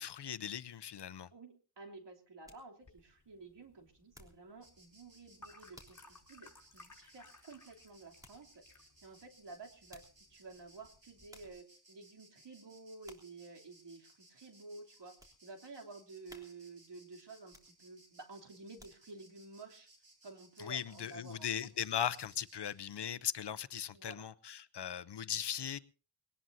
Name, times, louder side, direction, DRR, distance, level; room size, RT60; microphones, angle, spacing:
voice 1, 0.0-1.3 20.6-25.8, left 9 dB, 65° left, 0.8 m, -38 dB
voice 2, 1.3-8.6 9.0-10.0 10.3-19.9 20.2-21.7 23.9-24.3, right 3 dB, 70° right, 3.2 m, -52 dB
sound 1, 1.8-4.5 4.9-5.2 5.7-6.1 6.5-6.6 8.2-8.5 9.6-10.3 10.9-11.0 11.3-11.7 12.2-12.5 13.0-13.4 13.9-14.0 14.5-15.4 15.8-15.9 16.3-16.8 17.4-18.1 18.5-19.3 19.7-19.8, equal, 10° right, 3.4 m, -60 dB
sound 2, 2.8-11.5, left 2 dB, 40° left, 5.6 m, -61 dB
Insect, 4.6-22.8, right 1 dB, 55° right, 6.1 m, -64 dB
21.5 x 18.5 x 2.7 m
wide cardioid pair, 75°, 44 cm